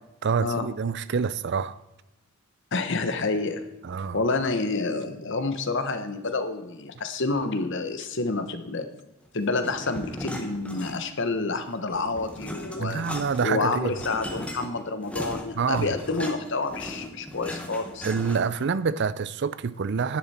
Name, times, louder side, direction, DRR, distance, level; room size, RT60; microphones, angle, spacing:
voice 1, 0.2-1.8 3.8-4.2 12.8-13.9 15.5-15.9 18.0-20.2, right 5 dB, 50° right, 0.4 m, -27 dB
voice 2, 2.7-3.6 4.1-8.9 9.3-13.0 13.4-18.1, left 3 dB, 55° left, 1.1 m, -28 dB
sound 1, 9.6-11.3 11.6-18.6, equal, 5° left, 1.1 m, -38 dB
10.5 x 10.5 x 4.3 m
head